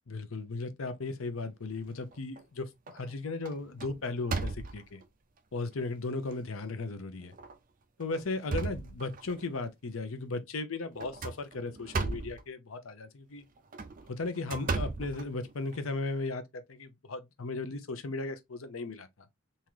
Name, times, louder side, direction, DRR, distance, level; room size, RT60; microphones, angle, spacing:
voice 1, 0.1-5.0 5.5-7.3 8.0-13.4 14.1-19.1, left 3 dB, 75° left, 0.7 m, -36 dB
sound 1, 1.8-2.4 2.9-3.1 3.5-5.0 5.7-5.8 6.3-6.4 7.3-7.5 8.0-9.5 11.0-12.4 13.6-15.8, right 3 dB, 40° right, 0.5 m, -36 dB
3.7 x 2.8 x 3.1 m
head